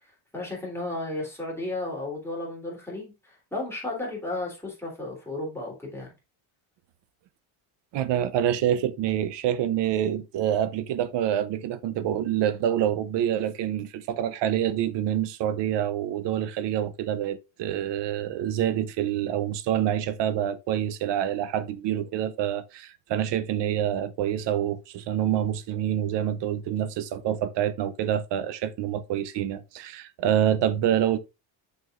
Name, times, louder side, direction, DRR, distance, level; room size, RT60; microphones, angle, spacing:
voice 1, 0.3-6.1, left 2 dB, 5° left, 3.2 m, -33 dB
voice 2, 7.9-31.2, right 10 dB, 60° right, 0.8 m, -27 dB
6.8 x 6.5 x 2.5 m
cardioid pair, 155°, 47 cm